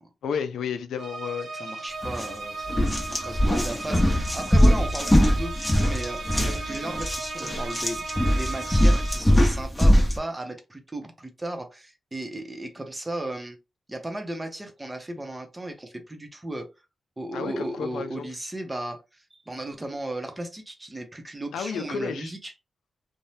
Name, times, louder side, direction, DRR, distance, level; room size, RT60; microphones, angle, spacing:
voice 1, 0.2-1.8 17.3-18.3 21.5-22.3, left 6 dB, 90° left, 0.3 m, -32 dB
sound 1, 1.0-9.5, right 3 dB, 75° right, 0.8 m, -36 dB
voice 2, 1.6-2.8 3.1-8.0 8.3-13.6 13.9-16.7 17.2-22.5, right 1 dB, 20° right, 0.9 m, -35 dB
sound 2, 2.0-2.3 2.7-10.2, equal, 10° left, 1.0 m, -21 dB
2.6 x 2.2 x 3.2 m
cardioid pair, 60°, 0 cm